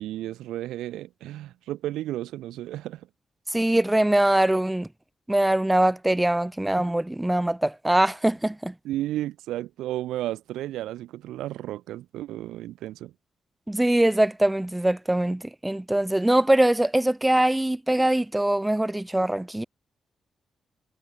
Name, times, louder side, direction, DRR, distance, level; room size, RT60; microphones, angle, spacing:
voice 1, 0.0-3.1 8.8-13.1, right 14 dB, 80° right, 0.7 m, -33 dB
voice 2, 3.5-4.9 5.3-8.7 13.7-19.6, right 1 dB, 10° right, 0.3 m, -22 dB
hypercardioid pair, 40°, 0 cm